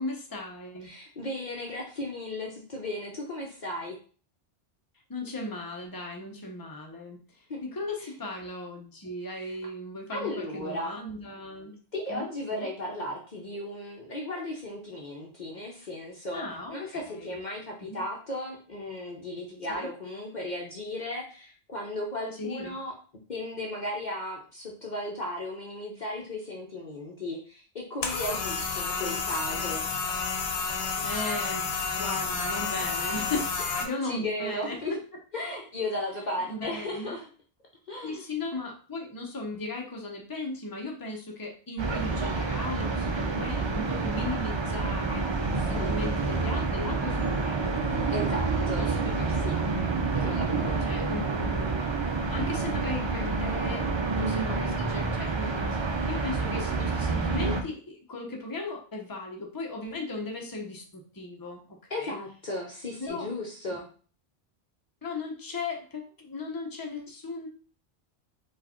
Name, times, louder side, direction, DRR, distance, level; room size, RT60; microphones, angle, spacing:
voice 1, 0.0-0.9 5.1-11.8 12.1-12.7 16.3-17.4 17.8-18.0 19.7-19.9 22.4-22.8 31.0-33.4 33.8-34.8 36.5-37.2 38.0-48.0 48.3-50.0 50.8-51.8 52.3-53.8 54.2-62.2 63.0-63.3 65.0-67.5, left 2 dB, 20° left, 0 dB, 0.9 m, -37 dB
voice 2, 0.8-4.0 7.5-7.6 8.0-8.1 9.4-9.6 10.1-11.0 11.9-16.4 16.7-22.9 23.3-29.9 32.8-32.9 34.0-34.9 35.3-37.2 37.9-38.2 45.6-45.9 48.1-48.9 49.4-49.6 50.2-51.2 61.9-63.8, left 1 dB, 50° left, -1 dB, 0.8 m, -35 dB
sound 1, 28.0-33.8, left 5 dB, 70° left, 1.0 m, -30 dB
sound 2, 41.8-57.6, right 4 dB, 35° right, 0.4 m, -28 dB
4.7 x 2.5 x 4.3 m, 0.41 s
omnidirectional pair, 1.1 m